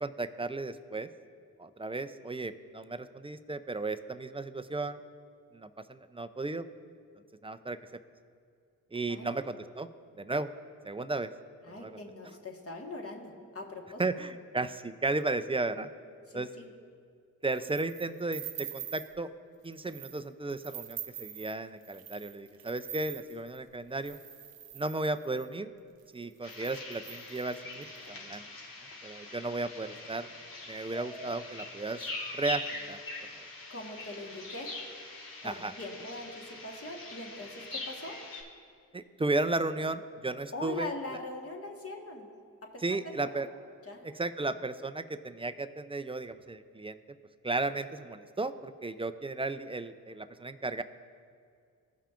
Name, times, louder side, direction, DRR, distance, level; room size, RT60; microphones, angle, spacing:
voice 1, 0.0-1.1 1.6-5.0 5.5-6.7 7.4-7.8 8.9-9.9 10.2-10.5 10.8-11.3 11.7-12.0 14.0-15.9 16.3-16.5 17.4-19.3 19.6-24.2 24.7-25.7 26.1-28.4 29.0-30.3 30.7-32.6 32.9-33.0 35.4-35.7 38.9-40.9 42.8-43.5 44.2-47.0 47.4-50.8, right 2 dB, 15° right, 11 dB, 0.4 m, -34 dB
voice 2, 11.6-14.0 16.3-16.6 33.7-34.7 35.4-38.2 40.5-42.3 42.7-43.4 43.8-44.0, left 2 dB, 35° left, 1 dB, 1.5 m, -42 dB
sound 1, 17.5-19.2 19.6-20.2 20.5-25.5 26.1-26.2 26.4-28.0, right 10 dB, 70° right, 0.6 m, -45 dB
sound 2, 26.4-38.4, left 2 dB, 60° left, 1.6 m, -43 dB
16.5 x 5.6 x 2.5 m, 2.3 s
supercardioid pair, 40°, 39 cm